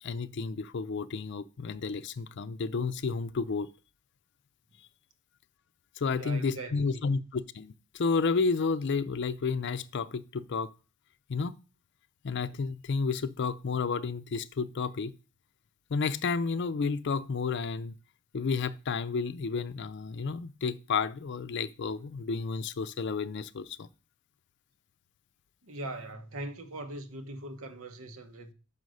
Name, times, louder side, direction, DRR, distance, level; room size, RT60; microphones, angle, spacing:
voice 1, 0.0-3.7 6.0-10.7 11.3-11.5 12.2-15.1 15.9-17.9 18.3-23.9, left 4 dB, 60° left, 0.5 m, -31 dB
voice 2, 6.1-7.2 25.6-28.5, right 2 dB, 90° right, 1.1 m, -41 dB
5.5 x 5.4 x 6.3 m
head